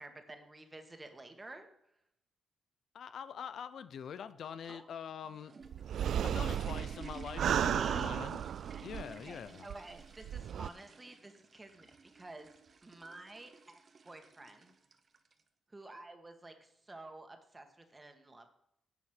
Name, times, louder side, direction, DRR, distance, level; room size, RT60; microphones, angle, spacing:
voice 1, 0.0-2.0 4.6-4.9 7.1-8.4 9.2-12.5 12.8-14.7 15.7-18.5, right 2 dB, 20° right, 5 dB, 2.0 m, -51 dB
voice 2, 2.9-5.5 6.2-8.4 8.8-9.7, left 7 dB, 70° left, 13 dB, 0.6 m, -44 dB
sound 1, 5.1-15.4, right 4 dB, 50° right, 1.1 m, -54 dB
sound 2, 5.7-9.3 9.7-9.8 10.2-10.7, right 9 dB, 70° right, 0.3 m, -34 dB
11.0 x 7.1 x 6.7 m, 0.77 s
cardioid pair, 70°, 0 cm